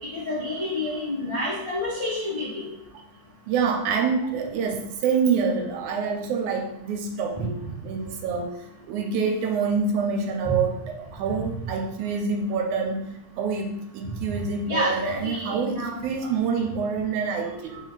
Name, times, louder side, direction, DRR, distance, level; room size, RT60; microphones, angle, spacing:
voice 1, 0.1-2.7 7.3-7.5 10.4-10.5 11.3-11.4 14.0-14.1 14.6-16.3 17.7-17.8, left 1 dB, 70° left, -8 dB, 0.3 m, -29 dB
voice 2, 3.5-7.6 7.8-13.1 13.4-17.8, right 5 dB, 75° right, 3 dB, 2.0 m, -26 dB
4.8 x 3.6 x 5.6 m, 0.81 s
omnidirectional pair, 3.6 m